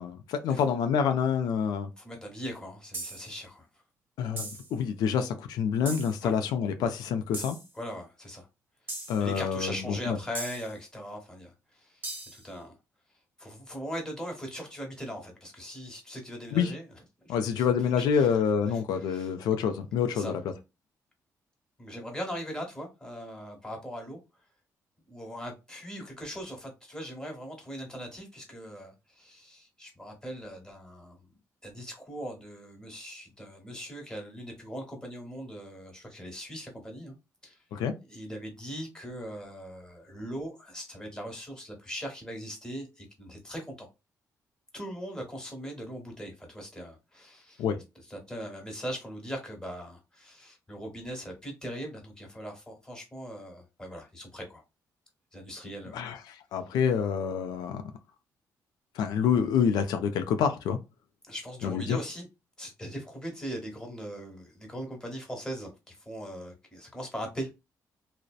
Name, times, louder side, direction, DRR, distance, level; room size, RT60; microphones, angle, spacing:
voice 1, 0.0-1.9 4.2-7.6 9.1-10.2 16.5-16.7 17.3-20.4 37.7-37.9 47.6-47.8 55.9-56.2 56.5-57.8 59.0-60.8 61.6-62.0, left 7 dB, 85° left, 0.3 m, -27 dB
voice 2, 2.0-3.7 5.9-6.3 7.7-8.5 9.0-12.0 12.3-12.7 13.4-16.9 17.2-17.7 18.0-19.4 20.1-20.3 21.8-24.2 25.1-31.2 31.6-37.1 37.4-37.6 38.1-43.9 44.7-47.6 47.9-54.6 55.3-56.0 61.3-62.3 62.6-67.5, equal, 10° left, 1.1 m, -40 dB
sound 1, 2.9-3.3 4.4-4.7 5.9-6.2 7.3-7.7 8.9-9.2 10.3-10.7 12.0-12.4, right 2 dB, 30° right, 1.0 m, -38 dB
2.6 x 2.0 x 2.3 m
cardioid pair, 90°, 7 cm